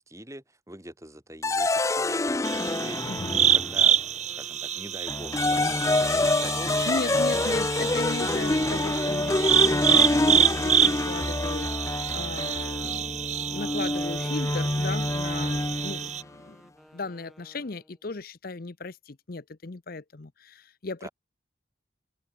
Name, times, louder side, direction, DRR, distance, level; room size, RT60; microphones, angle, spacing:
voice 1, 0.0-2.2 2.6-3.0 3.5-4.0 4.3-6.9 21.0-21.1, right 1 dB, 15° right, 4.7 m, -43 dB
sound 1, 1.4-4.0 5.1-16.2, left 2 dB, 15° left, 0.5 m, -27 dB
sound 2, 2.4-16.2, right 9 dB, 35° right, 0.6 m, -27 dB
voice 2, 3.1-3.4 6.9-9.3 9.6-16.6 16.9-21.1, left 3 dB, 50° left, 0.8 m, -37 dB
sound 3, 3.3-10.3 10.9-18.1, equal, ahead, 5.2 m, -56 dB
open air
head